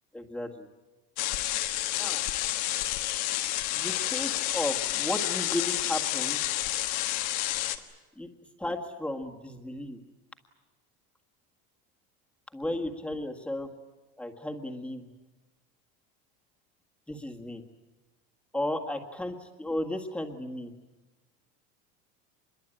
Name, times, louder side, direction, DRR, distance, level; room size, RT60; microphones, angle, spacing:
voice 1, 0.1-0.7 2.0-2.2 3.7-6.4 8.2-8.3 8.6-10.0 12.5-13.7 14.2-15.0 17.1-17.6 18.5-20.7, left 1 dB, 5° left, 2 dB, 1.8 m, -34 dB
sound 1, 1.2-7.8, left 15 dB, 60° left, 1.6 m, -30 dB
26.0 x 22.0 x 9.0 m, 1.1 s
cardioid pair, 165°, 32 cm